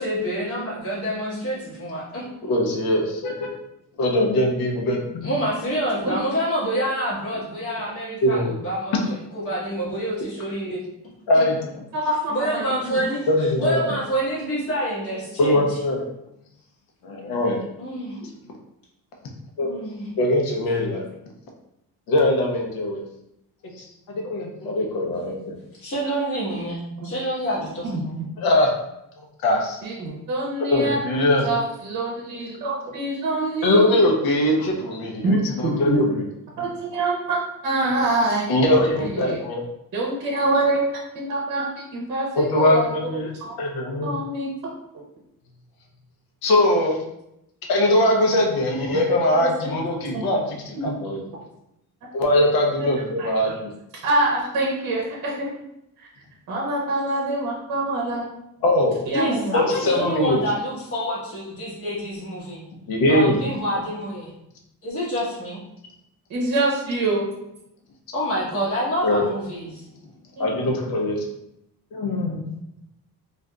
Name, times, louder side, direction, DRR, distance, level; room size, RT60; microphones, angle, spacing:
voice 1, 0.0-2.5 5.2-10.8 12.3-15.8 17.8-18.2 19.6-20.2 25.7-28.2 59.1-62.6 63.1-64.3 64.8-65.6 68.1-69.9, equal, 40° left, -8 dB, 1.4 m, -27 dB
voice 2, 2.5-3.5 4.0-5.3 8.2-8.5 11.3-11.6 12.9-13.0 13.3-13.8 15.4-16.0 17.0-17.6 19.6-19.7 20.2-21.0 22.1-23.0 24.1-25.5 28.4-28.7 29.4-29.8 30.7-31.5 33.6-36.2 38.5-39.6 42.4-43.3 43.6-44.2 46.4-47.0 47.7-51.2 52.1-53.7 58.6-59.0 59.5-60.4 62.9-63.4 69.0-69.2 70.4-71.2 71.9-72.4, left 1 dB, 85° left, 1 dB, 0.8 m, -21 dB
voice 3, 11.9-12.6 27.0-27.1 27.8-28.0 29.8-31.0 31.4-34.0 35.2-36.0 36.6-38.5 39.1-39.4 39.9-40.8 41.1-42.9 43.4-43.6 44.0-44.5 49.3-49.8 50.1-50.3 52.8-52.9 53.2-53.5 54.0-55.5 56.5-58.2 59.1-59.5 66.3-67.3 70.4-70.5, right 2 dB, 55° right, -3 dB, 0.7 m, -25 dB
3.7 x 2.5 x 2.2 m, 0.82 s
cardioid pair, 170°, 35 cm